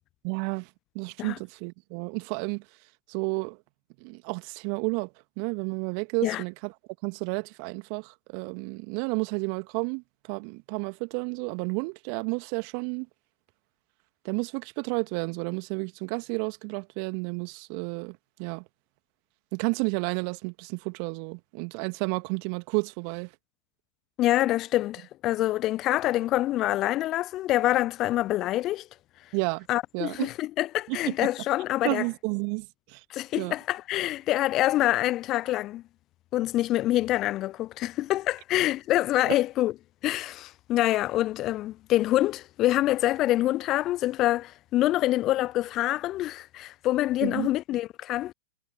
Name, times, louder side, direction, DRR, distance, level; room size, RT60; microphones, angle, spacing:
voice 1, 0.2-0.7 1.0-2.6 3.1-3.6 4.0-5.1 5.4-6.7 7.0-10.0 10.3-13.1 14.2-18.6 19.5-23.3 29.3-29.7 29.9-30.3 30.9-31.1 31.8-33.0 33.4-33.5 47.2-47.5, right 37 dB, 45° right, 1.9 m, -31 dB
voice 2, 24.2-28.9 29.7-32.0 33.1-35.8 36.3-39.7 40.0-48.3, left 15 dB, 30° left, 0.4 m, -26 dB
figure-of-eight pair, 105°, 0 cm